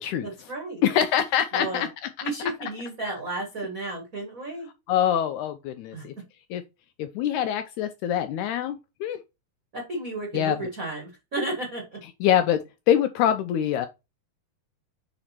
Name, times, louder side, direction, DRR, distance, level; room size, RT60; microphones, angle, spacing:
voice 1, 0.2-0.8 1.5-1.9 2.2-4.7 5.9-6.0 9.7-12.0, right 2 dB, 35° right, 1.5 m, -33 dB
voice 2, 0.8-2.1 4.9-6.1 6.5-6.6 7.0-9.2 10.3-10.6 12.2-13.9, left 10 dB, 85° left, 1.7 m, -24 dB
5.1 x 4.9 x 4.3 m
omnidirectional pair, 3.9 m